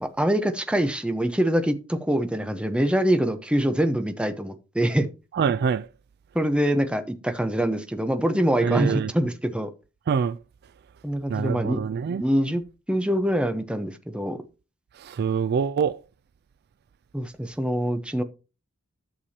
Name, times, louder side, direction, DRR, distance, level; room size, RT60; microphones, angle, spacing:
voice 1, 0.0-5.1 6.3-9.7 11.0-11.8 12.2-12.6 12.9-14.4 17.1-18.2, equal, 5° right, 0.8 m, -24 dB
voice 2, 5.3-5.9 8.6-9.1 10.1-10.4 11.3-12.2 15.0-16.0, right 6 dB, 50° right, 0.3 m, -25 dB
11.5 x 6.8 x 2.8 m
head